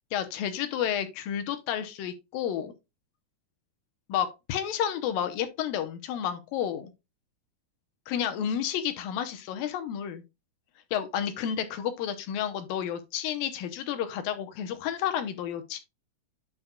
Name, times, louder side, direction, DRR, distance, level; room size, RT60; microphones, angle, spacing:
voice 1, 0.1-2.7 4.1-6.9 8.1-10.2 10.9-15.8, left 9 dB, 80° left, 2.5 m, -31 dB
10.5 x 5.2 x 2.3 m
omnidirectional pair, 4.1 m